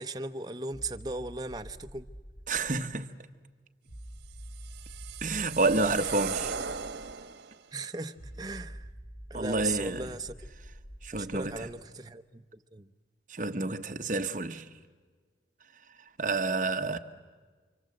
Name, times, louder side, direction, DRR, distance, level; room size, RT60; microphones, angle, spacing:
voice 1, 0.0-2.0 7.7-8.9 9.3-10.4 11.1-12.9, right 3 dB, 20° right, 0.8 m, -37 dB
sound 1, 0.7-3.0 3.9-7.1 8.2-11.7, equal, 45° left, 2.4 m, -47 dB
voice 2, 2.5-3.1 5.2-6.5 9.3-10.1 11.0-11.7 13.3-14.6 16.2-17.0, right 3 dB, 45° right, 1.1 m, -29 dB
sound 2, 4.4-7.6, right 6 dB, 85° right, 1.2 m, -37 dB
28.5 x 25.5 x 7.8 m
head